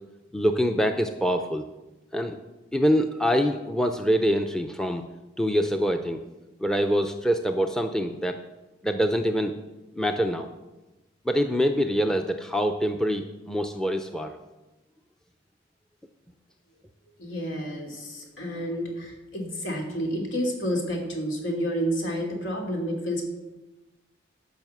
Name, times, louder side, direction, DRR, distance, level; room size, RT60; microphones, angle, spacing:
voice 1, 0.3-1.7 2.1-2.4 2.7-5.1 5.4-6.2 6.6-8.4 8.8-9.5 10.0-10.5 11.2-14.3, equal, 5° left, 6 dB, 0.5 m, -25 dB
voice 2, 17.2-23.3, equal, 90° left, 1 dB, 2.9 m, -30 dB
12.0 x 5.8 x 7.9 m, 1.1 s
head